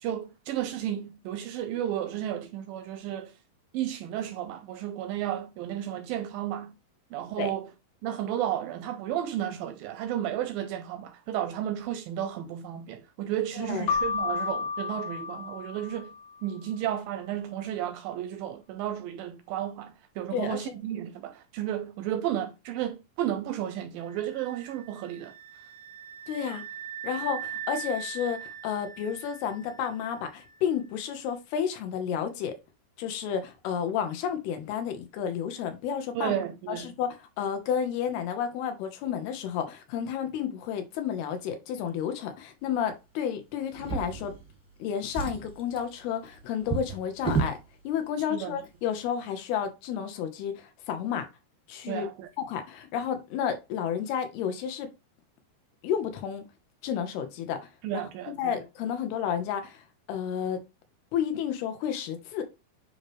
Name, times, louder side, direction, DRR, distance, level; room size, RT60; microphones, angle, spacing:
voice 1, 0.0-3.4 3.7-6.8 7.1-7.7 8.0-16.1 16.4-25.3 36.1-36.9 48.3-48.6 51.9-52.3 57.8-58.6, right 11 dB, 85° right, 2.1 m, -33 dB
voice 2, 13.6-13.9 20.3-20.8 26.3-26.6 27.0-32.6 33.0-36.3 36.7-44.3 44.8-47.6 47.8-51.3 51.7-52.1 52.4-54.9 55.8-56.4 56.8-57.6 57.9-58.0 58.3-59.8 60.1-60.6 61.1-62.4, left 8 dB, 85° left, 3.0 m, -31 dB
Keyboard (musical), 13.9-16.4, left 5 dB, 70° left, 2.3 m, -31 dB
sound 1, 24.0-30.8, right 9 dB, 35° right, 0.8 m, -41 dB
Drawer open or close, 43.7-44.7 45.0-47.6 48.5-48.7 49.0-49.1, right 5 dB, 5° left, 0.7 m, -33 dB
9.4 x 3.2 x 3.1 m
omnidirectional pair, 4.5 m